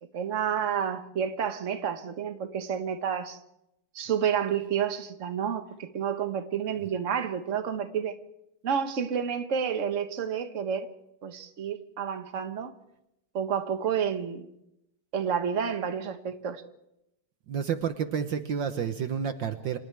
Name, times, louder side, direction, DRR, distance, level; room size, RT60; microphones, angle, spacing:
voice 1, 0.1-3.4 3.9-8.1 8.6-10.9 11.2-12.7 13.3-14.5 15.1-16.6, right 7 dB, 40° right, 1.6 m, -30 dB
voice 2, 17.5-19.8, right 7 dB, 65° right, 1.7 m, -30 dB
29.5 x 27.0 x 3.5 m
omnidirectional pair, 2.3 m